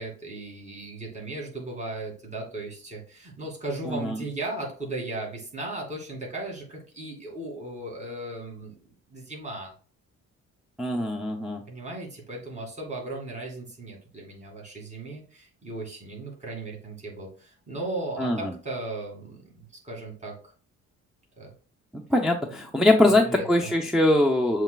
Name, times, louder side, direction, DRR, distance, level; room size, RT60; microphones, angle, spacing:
voice 1, 0.0-9.7 11.7-20.4 21.4-21.5 23.0-23.7, right 2 dB, 25° right, -1 dB, 2.1 m, -36 dB
voice 2, 3.9-4.2 10.8-11.6 18.2-18.6 21.9-24.6, left 1 dB, ahead, -1 dB, 0.6 m, -22 dB
7.0 x 3.2 x 2.3 m, 0.39 s
cardioid pair, 90°, 30 cm